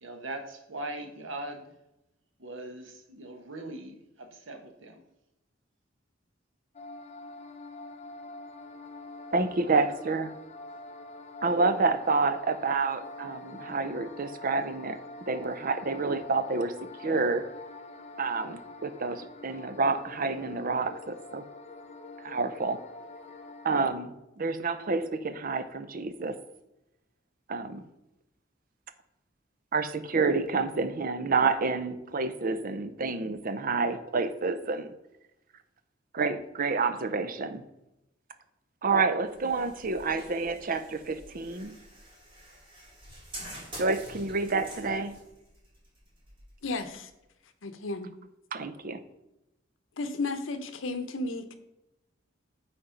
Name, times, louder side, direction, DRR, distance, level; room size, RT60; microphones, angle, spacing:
voice 1, 0.0-1.7 2.4-5.0, right 2 dB, 80° right, 1.2 m, -40 dB
sound 1, 6.7-23.9, left 2 dB, 35° left, 0.7 m, -45 dB
voice 2, 9.3-10.3 11.4-15.0 15.3-16.7 17.0-17.5 18.2-21.4 22.2-22.8 23.6-26.4 27.5-27.8 29.7-34.9 36.1-37.6 38.8-41.8 43.8-45.1 48.5-49.0, right 4 dB, 45° right, 0.6 m, -28 dB
sound 2, 39.3-47.1, right 1 dB, 25° right, 2.9 m, -48 dB
voice 3, 46.6-47.1 47.6-48.1 50.0-51.5, left 3 dB, 85° left, 0.9 m, -33 dB
8.8 x 4.3 x 5.1 m
head